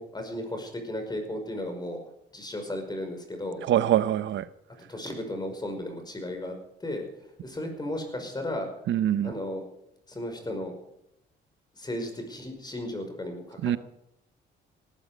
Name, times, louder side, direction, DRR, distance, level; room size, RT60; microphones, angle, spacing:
voice 1, 0.0-2.0 2.3-3.6 4.9-6.5 6.8-7.1 7.4-8.7 9.2-9.6 10.1-10.7 11.7-13.7, left 1 dB, 20° left, 5.4 m, -34 dB
voice 2, 3.7-4.5 8.9-9.3 13.6-13.8, right 11 dB, 70° right, 0.8 m, -24 dB
18.0 x 13.5 x 5.1 m
cardioid pair, 90°, 20 cm